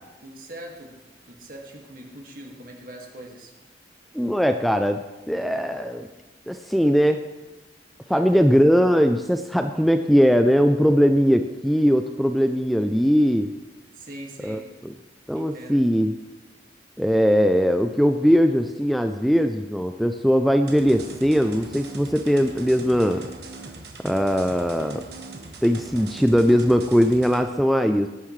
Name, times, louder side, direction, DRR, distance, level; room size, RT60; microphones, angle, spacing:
voice 1, 0.2-3.5 8.1-8.5 13.9-14.7 15.3-15.8, right 1 dB, 50° right, 1 dB, 2.0 m, -42 dB
voice 2, 4.1-5.0 5.3-6.1 6.5-7.2 8.1-13.5 14.4-14.6 14.8-14.9 15.3-16.1 17.0-23.2 24.0-25.0 25.6-28.1, equal, ahead, 6 dB, 0.4 m, -20 dB
sound 1, 20.7-27.4, right 3 dB, 65° right, 1.6 m, -40 dB
18.0 x 9.4 x 3.2 m, 1.2 s
head